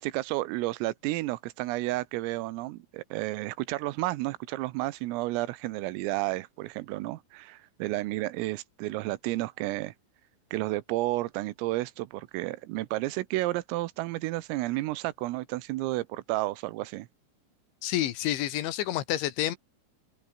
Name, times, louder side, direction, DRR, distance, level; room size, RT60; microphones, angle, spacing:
voice 1, 0.0-9.9 10.5-17.1, right 18 dB, 85° right, 3.7 m, -31 dB
voice 2, 17.8-19.6, left 13 dB, 70° left, 3.7 m, -29 dB
omnidirectional pair, 5.8 m